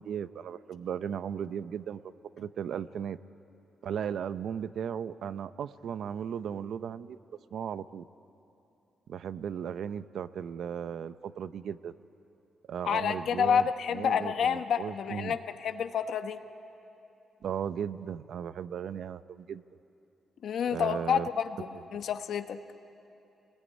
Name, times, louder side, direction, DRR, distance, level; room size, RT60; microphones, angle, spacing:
voice 1, 0.0-3.2 3.8-7.2 7.5-8.1 9.1-11.9 12.7-13.7 13.9-15.4 17.4-19.6 20.7-21.3 21.7-22.1, right 8 dB, 70° right, 13 dB, 0.7 m, -36 dB
voice 2, 12.8-16.4 20.4-22.6, left 7 dB, 70° left, 8 dB, 1.1 m, -29 dB
27.0 x 20.0 x 9.9 m, 2.9 s
cardioid pair, 140°, 0 cm